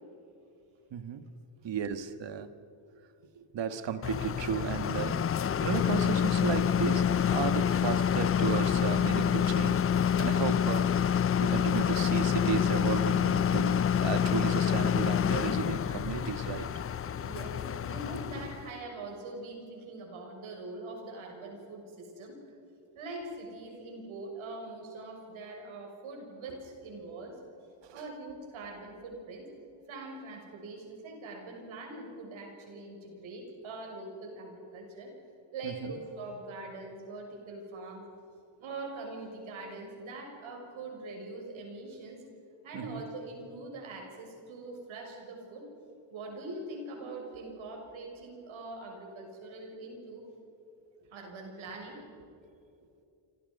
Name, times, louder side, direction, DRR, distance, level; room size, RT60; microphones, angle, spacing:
voice 1, 0.9-1.2 1.6-2.5 3.3-5.3 5.6-9.9 10.2-10.9 11.4-16.7 27.8-28.0 35.6-35.9 42.7-43.0, right 7 dB, 65° right, 10 dB, 1.7 m, -34 dB
sound 1, 4.0-18.7, left 8 dB, 30° left, 0.4 m, -27 dB
voice 2, 17.1-22.4 22.9-27.4 27.9-29.5 29.9-35.1 35.5-38.0 38.6-42.2 42.6-45.7 46.1-50.2 51.1-52.0, right 2 dB, 85° right, 1 dB, 6.6 m, -43 dB
27.5 x 26.0 x 5.4 m, 2.7 s
cardioid pair, 85°, 47 cm